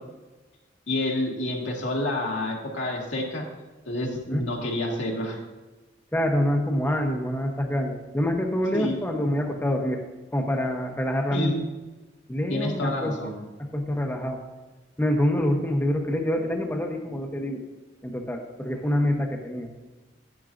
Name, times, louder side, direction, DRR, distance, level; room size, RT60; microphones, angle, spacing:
voice 1, 0.9-3.4 3.9-5.4 8.7-8.9 11.3-11.6 12.5-13.4, left 1 dB, 80° left, -2 dB, 1.9 m, -28 dB
voice 2, 6.1-10.0 10.3-11.5 12.3-13.3 13.6-14.4 15.0-17.6 18.0-19.7, left 1 dB, 10° left, 1 dB, 0.8 m, -26 dB
10.5 x 9.6 x 2.5 m, 1.2 s
head